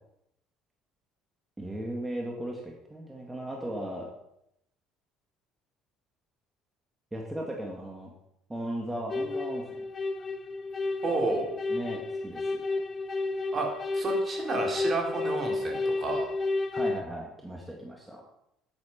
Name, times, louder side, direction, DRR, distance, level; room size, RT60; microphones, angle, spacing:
voice 1, 1.6-4.1 7.1-8.1 8.5-9.9 11.7-12.6 16.7-18.2, right 1 dB, 10° right, -1 dB, 1.9 m, -37 dB
sound 1, 9.1-17.0, left 3 dB, 30° left, 1.0 m, -31 dB
voice 2, 11.0-11.6 13.5-16.3, right 3 dB, 30° right, 1 dB, 3.6 m, -31 dB
10.5 x 8.7 x 5.8 m, 0.79 s
cardioid pair, 125°, 0 cm